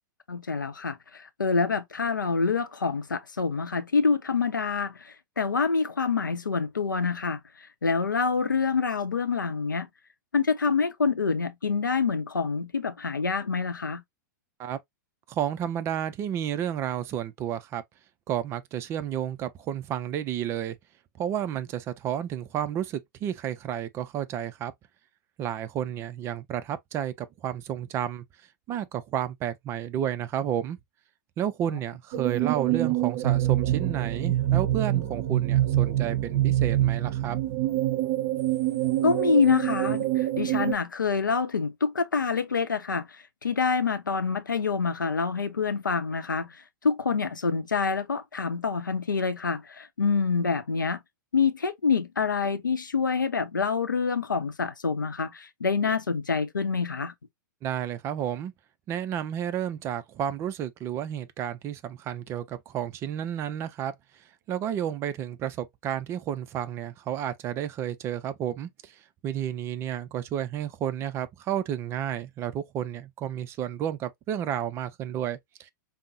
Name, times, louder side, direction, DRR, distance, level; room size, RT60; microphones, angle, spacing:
voice 1, 0.3-7.4 7.8-9.9 10.3-14.0 39.0-43.1 43.4-46.5 46.8-51.0 51.3-57.1, left 5 dB, 80° left, 0.6 m, -26 dB
voice 2, 15.3-17.8 18.3-20.8 21.2-24.7 25.4-28.2 28.7-30.8 31.4-37.4 57.6-58.5 58.9-63.9 64.5-68.9 69.2-75.7, right 10 dB, 25° right, 0.4 m, -31 dB
sound 1, 32.1-40.7, right 14 dB, 45° right, 0.8 m, -25 dB
5.1 x 2.0 x 2.5 m
figure-of-eight pair, 100°, 10 cm